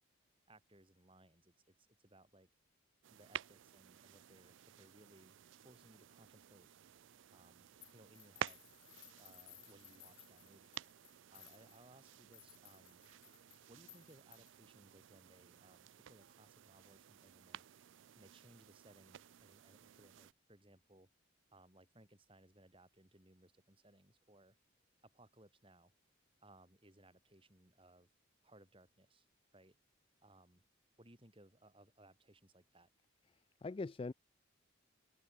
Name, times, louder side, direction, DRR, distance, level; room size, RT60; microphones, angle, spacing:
voice 1, 0.5-2.5 3.1-5.4 5.6-6.7 7.3-8.7 9.2-10.8 11.3-13.0 13.7-17.6 18.1-21.1 21.5-24.6 25.0-25.9 26.4-28.1 28.4-29.3 29.5-29.8 30.2-30.7 31.0-32.9, right 1 dB, 25° right, 4.9 m, -64 dB
sound 1, 3.0-20.3, right 9 dB, 60° right, 0.4 m, -52 dB
sound 2, 7.8-14.7, left 17 dB, 55° left, 3.1 m, -62 dB
voice 2, 33.3-34.1, left 3 dB, 25° left, 0.3 m, -43 dB
open air
head